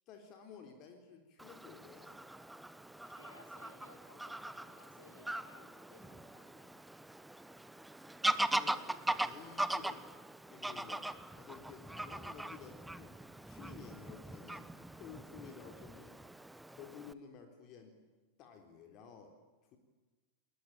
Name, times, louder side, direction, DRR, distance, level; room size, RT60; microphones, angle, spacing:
voice 1, 0.1-2.2 8.5-10.1 10.5-13.1 13.5-14.7 14.9-16.2 16.7-18.0 18.4-19.4 19.7-19.8, left 6 dB, 35° left, 5 dB, 3.8 m, -53 dB
Fowl / Bird vocalization bird call bird song, 1.4-17.1, right 1 dB, 5° right, 1.2 m, -40 dB
voice 2, 3.1-6.7, left 1 dB, 75° left, 5 dB, 6.6 m, -60 dB
30.0 x 21.5 x 9.1 m, 1.2 s
figure-of-eight pair, 90°, 0 cm